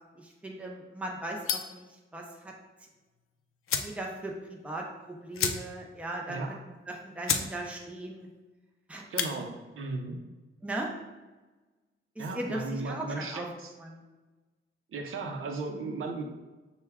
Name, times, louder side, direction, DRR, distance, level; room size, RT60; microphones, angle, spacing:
voice 1, 0.2-2.5 3.8-6.6 6.9-8.3 8.9-9.0 9.4-9.5 10.6-11.0 12.2-13.5 13.8-14.0, right 1 dB, 5° right, 0 dB, 0.5 m, -38 dB
sound 1, 1.4-1.8 3.2-3.3 3.6-4.0 4.4-4.5 4.7-4.8 5.3-5.9 6.3-6.4 6.9-7.0 7.2-7.5 7.9-8.2 9.0-9.3, left 7 dB, 80° left, 0.4 m, -31 dB
voice 2, 9.1-10.2 12.2-13.7 14.9-16.2, right 3 dB, 75° right, 3 dB, 0.6 m, -36 dB
5.8 x 2.2 x 3.5 m, 1.2 s
wide cardioid pair, 150°, 21 cm